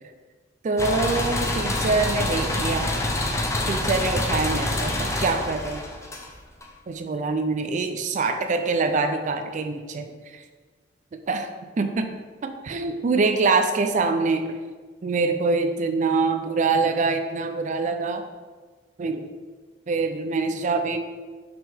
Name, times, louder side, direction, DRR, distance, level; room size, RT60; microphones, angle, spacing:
voice 1, 0.6-2.9 3.7-5.8 6.9-10.4 11.3-11.5 11.8-12.1 12.4-14.5 15.0-18.2 19.0-19.2 19.9-21.0, right 3 dB, 40° right, 7 dB, 0.4 m, -24 dB
sound 1, 0.8-6.6, left 1 dB, 15° left, 0.6 m, -26 dB
5.9 x 5.5 x 3.4 m, 1.4 s
head